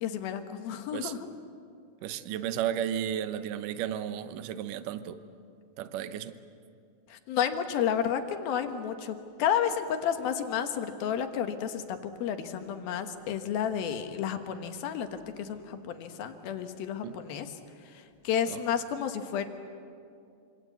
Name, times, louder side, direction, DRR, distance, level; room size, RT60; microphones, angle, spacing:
voice 1, 0.0-1.3 7.1-15.1 15.4-17.5 17.9-19.5, left 8 dB, 75° left, 7 dB, 3.0 m, -31 dB
voice 2, 2.0-5.2 5.8-6.4 17.0-17.2 18.5-18.6, right 10 dB, 70° right, 11 dB, 2.2 m, -33 dB
26.5 x 26.0 x 8.3 m, 2.4 s
omnidirectional pair, 4.5 m